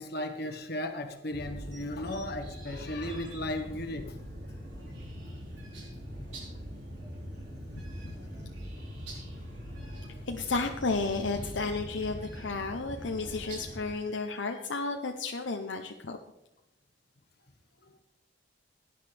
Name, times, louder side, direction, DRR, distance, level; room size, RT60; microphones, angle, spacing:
voice 1, 0.0-4.2 5.3-5.4 7.8-8.2 9.3-9.4 9.7-10.3 17.8-17.9, left 1 dB, 55° left, 1.4 m, -37 dB
sound 1, 1.3-13.9, equal, 65° right, 5.0 m, -42 dB
voice 2, 10.2-16.2, left 3 dB, 75° left, 0.8 m, -32 dB
17.5 x 10.5 x 3.4 m
head